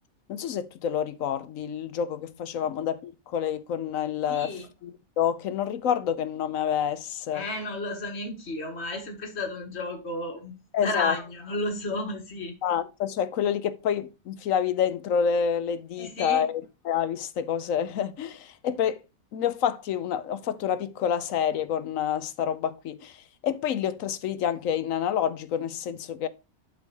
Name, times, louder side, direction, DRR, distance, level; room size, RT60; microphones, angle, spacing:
voice 1, 0.3-7.5 10.7-11.2 12.6-19.0 19.3-23.2 23.4-26.3, left 8 dB, 70° left, 1.0 m, -28 dB
voice 2, 4.3-4.7 7.3-10.5 10.8-12.5 16.0-16.4, left 2 dB, 45° left, 2.0 m, -32 dB
12.0 x 4.7 x 3.0 m
omnidirectional pair, 1.5 m